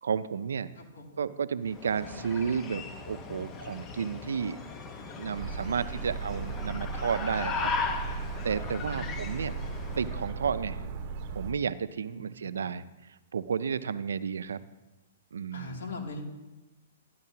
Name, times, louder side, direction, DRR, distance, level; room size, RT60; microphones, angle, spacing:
voice 1, 0.0-0.7 1.2-4.6 5.0-7.7 8.0-8.1 8.4-9.5 10.0-10.8 11.3-12.8 13.3-14.6 15.3-15.7, right 6 dB, 85° right, 14 dB, 0.5 m, -32 dB
voice 2, 0.7-1.3 8.7-9.6 12.1-12.8 15.5-16.2, left 2 dB, 75° left, 0 dB, 2.7 m, -43 dB
sound 1, 1.7-10.3, left 4 dB, 25° left, 1.1 m, -37 dB
sound 2, 5.3-11.5, right 4 dB, 45° right, 0.9 m, -37 dB
12.5 x 11.0 x 2.9 m, 1.1 s
hypercardioid pair, 135°, 0 cm